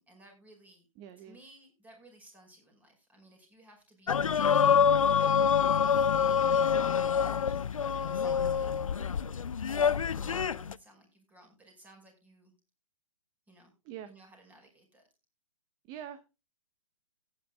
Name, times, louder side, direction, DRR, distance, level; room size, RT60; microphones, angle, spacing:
voice 1, 0.0-0.9 1.2-4.2 5.1-5.4 5.8-8.8 10.1-12.5 13.5-13.7 14.0-15.0, right 1 dB, 10° right, 2 dB, 5.3 m, -58 dB
voice 2, 1.0-1.5 13.9-14.1 15.9-16.3, right 10 dB, 25° right, 11 dB, 0.9 m, -44 dB
sound 1, 4.1-10.7, left 7 dB, 80° left, 0.5 m, -26 dB
17.0 x 9.9 x 2.3 m, 0.26 s
hypercardioid pair, 130°, 17 cm